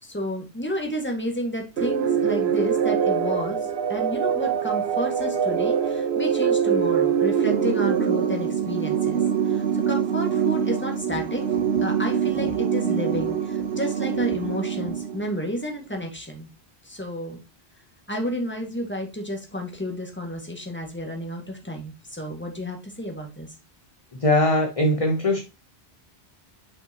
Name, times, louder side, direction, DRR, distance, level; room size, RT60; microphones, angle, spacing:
voice 1, 0.0-3.6 3.9-16.5 16.8-17.4 18.1-23.5, equal, 10° left, 2 dB, 1.8 m, -31 dB
sound 1, 1.8-15.5, right 7 dB, 75° right, 1.1 m, -24 dB
voice 2, 24.2-25.4, left 1 dB, 35° left, 3 dB, 1.0 m, -20 dB
6.1 x 5.7 x 2.9 m, 0.29 s
omnidirectional pair, 1.1 m